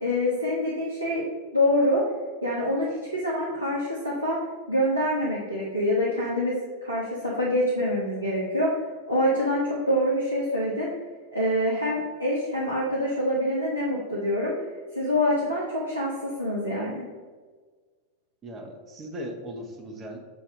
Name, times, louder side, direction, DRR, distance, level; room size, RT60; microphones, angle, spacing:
voice 1, 0.0-1.2 1.5-2.0 2.4-4.4 4.7-8.7 9.1-10.9 11.3-14.5 14.9-17.0, left 1 dB, 85° right, -6 dB, 0.9 m, -25 dB
voice 2, 18.4-20.2, equal, 25° right, 2 dB, 1.0 m, -38 dB
6.9 x 2.7 x 5.2 m, 1.5 s
figure-of-eight pair, 90°, 0 cm